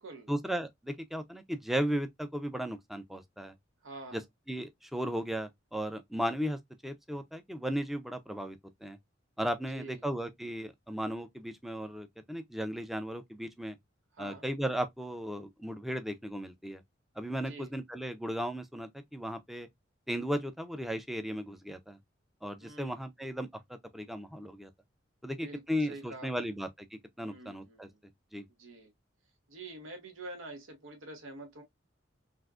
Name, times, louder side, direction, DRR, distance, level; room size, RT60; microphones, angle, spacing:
voice 1, 0.3-3.5 4.1-4.2 4.5-9.0 9.4-13.8 14.2-16.8 17.2-19.7 20.1-22.0 22.4-24.7 25.2-27.9 28.3-28.5, equal, ahead, 0.4 m, -36 dB
voice 2, 3.8-4.2 9.7-10.0 14.2-14.4 17.5-17.7 22.6-23.0 25.3-26.3 27.2-28.0 28.6-28.9 29.5-31.6, right 2 dB, 90° right, 0.9 m, -46 dB
3.6 x 2.5 x 2.3 m
head